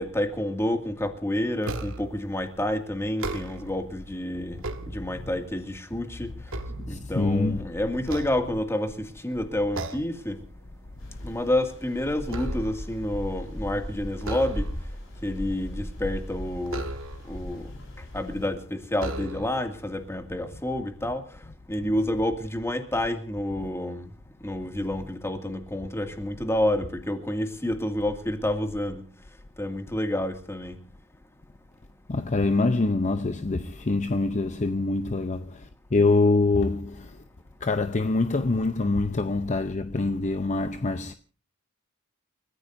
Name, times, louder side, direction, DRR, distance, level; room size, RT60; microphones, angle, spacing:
voice 1, 0.0-4.7 4.9-6.3 6.9-10.4 11.2-14.7 15.2-16.9 17.3-17.7 18.1-21.2 21.7-24.1 24.4-29.0 29.6-30.8, left 1 dB, 15° left, 2.2 m, -29 dB
sound 1, 1.6-2.2 3.1-3.9 4.4-5.5 6.0-7.5 8.0-9.0 9.7-10.2 10.6-10.9 11.3-13.0 14.2-15.0 16.7-17.4 18.2-18.3 18.9-19.7, right 2 dB, 70° right, 1.7 m, -36 dB
voice 2, 6.7-7.6 32.1-37.2 37.6-41.1, left 3 dB, 35° left, 0.7 m, -25 dB
sound 2, 11.0-18.5, equal, 75° left, 7.7 m, -37 dB
29.5 x 14.5 x 2.6 m
head